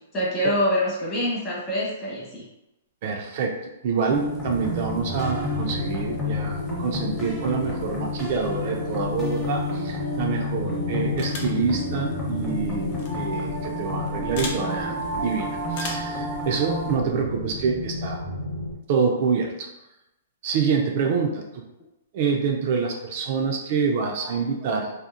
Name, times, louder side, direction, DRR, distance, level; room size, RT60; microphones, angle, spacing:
voice 1, 0.1-2.4 24.2-24.4, left 1 dB, 25° left, -6 dB, 1.0 m, -25 dB
voice 2, 3.0-18.2 18.9-19.7 20.4-21.6 22.1-24.9, right 5 dB, 50° right, 2 dB, 0.3 m, -26 dB
sound 1, 4.1-17.0, left 2 dB, 10° left, 0.7 m, -30 dB
sound 2, 4.4-18.7, left 2 dB, 80° left, 0.8 m, -35 dB
sound 3, 11.2-11.6 12.9-13.1 14.4-14.6 15.7-16.1, left 3 dB, 50° left, 0.5 m, -34 dB
2.7 x 2.0 x 2.4 m, 0.91 s
hypercardioid pair, 145°, 0 cm